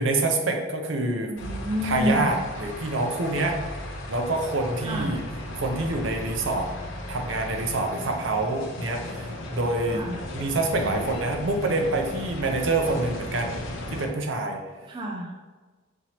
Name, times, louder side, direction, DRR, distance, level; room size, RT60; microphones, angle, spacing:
voice 1, 0.0-1.3 1.8-3.6 4.1-5.2 5.5-6.7 7.1-10.0 10.3-13.6 13.9-14.6, right 2 dB, 70° right, 3 dB, 0.6 m, -26 dB
voice 2, 1.3-2.3 4.8-5.2 9.9-10.2 14.9-15.4, equal, 25° right, 0 dB, 0.3 m, -29 dB
sound 1, 1.4-14.1, left 1 dB, 70° left, 0.6 m, -36 dB
5.3 x 3.0 x 2.9 m, 1.3 s
head